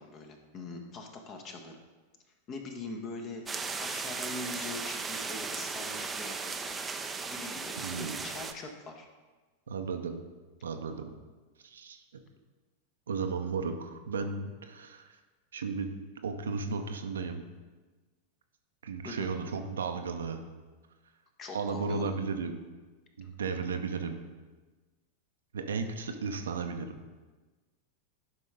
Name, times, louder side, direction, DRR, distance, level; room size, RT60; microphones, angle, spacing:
voice 1, 0.0-1.8 2.5-3.4 3.8-6.9 7.2-9.1 19.0-19.3 21.4-22.1 23.2-23.3, left 3 dB, 30° left, 4 dB, 1.2 m, -42 dB
sound 1, 3.5-8.5, right 4 dB, 15° right, 0.6 m, -36 dB
voice 2, 7.8-8.2 9.7-10.2 10.6-11.1 11.6-12.2 13.1-15.1 15.5-17.4 18.8-20.4 21.5-22.7 23.2-24.2 25.5-27.0, right 5 dB, 65° right, 6 dB, 0.7 m, -34 dB
11.5 x 5.4 x 3.7 m, 1.3 s
figure-of-eight pair, 90°, 0 cm